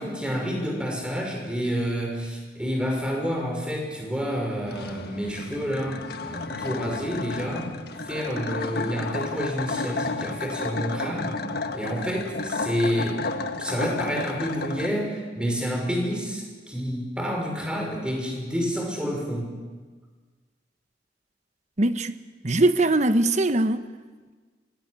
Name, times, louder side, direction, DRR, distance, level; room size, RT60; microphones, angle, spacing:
voice 1, 0.0-7.7 8.1-11.4 11.7-13.2 13.6-19.5, equal, 5° right, 5.8 m, -29 dB
sound 1, 4.7-14.9, left 3 dB, 60° left, 1.5 m, -32 dB
voice 2, 21.8-22.1 22.4-23.8, right 2 dB, 40° right, 1.2 m, -21 dB
24.5 x 18.0 x 9.7 m
head